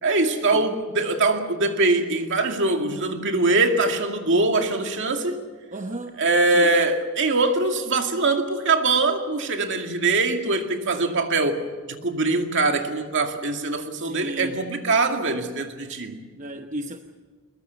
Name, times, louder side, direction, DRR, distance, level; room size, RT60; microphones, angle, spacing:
voice 1, 0.0-5.5 6.2-11.7 12.0-16.2, right 3 dB, 60° right, 4 dB, 2.2 m, -22 dB
voice 2, 5.7-6.2 6.5-6.8 14.0-14.6 16.4-17.0, right 1 dB, 35° right, 5 dB, 1.0 m, -33 dB
22.0 x 22.0 x 7.1 m, 1.4 s
head